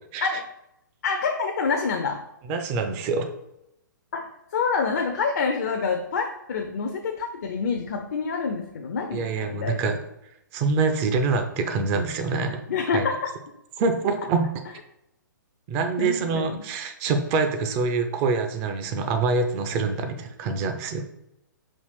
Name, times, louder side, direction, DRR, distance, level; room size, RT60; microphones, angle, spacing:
voice 1, 1.0-2.2 4.1-9.9 12.7-13.3 16.0-16.7, left 5 dB, 50° left, 4 dB, 0.4 m, -27 dB
voice 2, 2.5-3.3 9.1-9.9 10.5-12.6 12.9-13.0 13.8-14.5 15.7-21.0, right 4 dB, 20° right, 6 dB, 0.4 m, -25 dB
5.2 x 2.4 x 3.3 m, 0.84 s
figure-of-eight pair, 120°, 11 cm